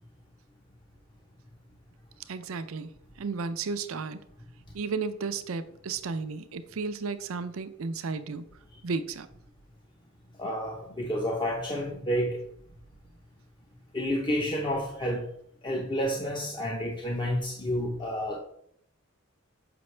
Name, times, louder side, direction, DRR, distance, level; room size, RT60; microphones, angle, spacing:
voice 1, 2.3-2.9 3.2-4.2 4.7-8.4 8.8-9.3, right 4 dB, 75° right, 11 dB, 0.5 m, -33 dB
voice 2, 10.4-12.4 13.9-15.3 15.6-18.4, equal, 25° left, -1 dB, 0.7 m, -30 dB
6.8 x 5.1 x 3.2 m, 0.68 s
head